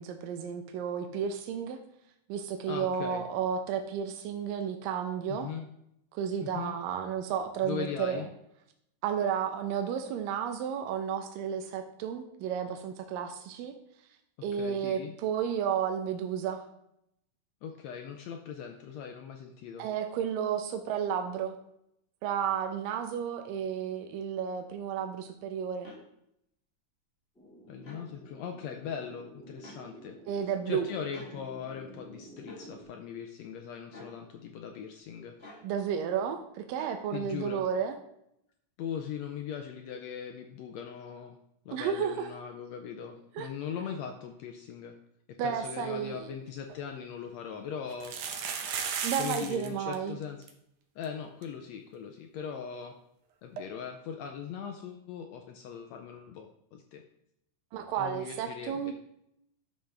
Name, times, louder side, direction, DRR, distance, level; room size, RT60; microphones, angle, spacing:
voice 1, 0.0-1.8 2.3-5.5 6.1-8.2 9.0-13.7 14.4-16.6 19.8-21.6 22.2-25.9 30.3-30.9 35.6-37.9 41.7-42.3 43.3-43.5 45.4-46.3 49.0-50.2 57.7-58.9, right 8 dB, 85° right, 5 dB, 2.4 m, -32 dB
voice 2, 2.7-3.2 5.3-5.7 6.4-6.8 7.6-8.3 14.5-15.1 17.6-19.9 27.7-30.2 30.7-35.3 37.1-37.6 38.8-41.4 41.6-44.9 45.4-48.2 49.2-50.5 50.9-52.9 53.4-57.0 58.0-58.9, left 7 dB, 85° left, 4 dB, 1.5 m, -40 dB
sound 1, 25.8-26.0 27.8-28.1 29.6-29.8 31.1-31.3 32.5-32.7 33.9-34.2 35.4-35.7 36.8-37.0, left 2 dB, 35° left, 1.0 m, -48 dB
sound 2, 27.3-32.8, equal, ahead, 1.1 m, -51 dB
sound 3, 46.3-46.4 46.7-46.8 47.9-49.7 49.9-50.0 50.2-50.5 51.0-51.1 51.4-51.5 53.6-53.7, right 7 dB, 70° right, 2.3 m, -35 dB
11.5 x 6.5 x 3.5 m, 0.77 s
omnidirectional pair, 3.8 m